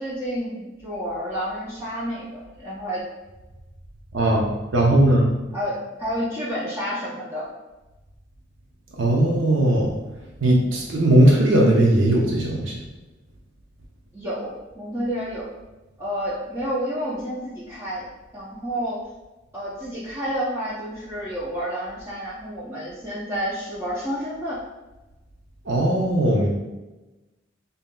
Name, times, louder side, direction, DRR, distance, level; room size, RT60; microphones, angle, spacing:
voice 1, 0.0-3.0 5.5-7.5 14.1-15.5 16.0-18.1 18.3-19.0 19.5-24.6, equal, 15° right, -8 dB, 0.7 m, -30 dB
voice 2, 4.1-4.5 4.7-5.3 9.0-9.9 10.4-12.7 25.7-26.5, right 1 dB, 90° right, -2 dB, 0.6 m, -18 dB
5.4 x 2.8 x 2.2 m, 1.1 s
head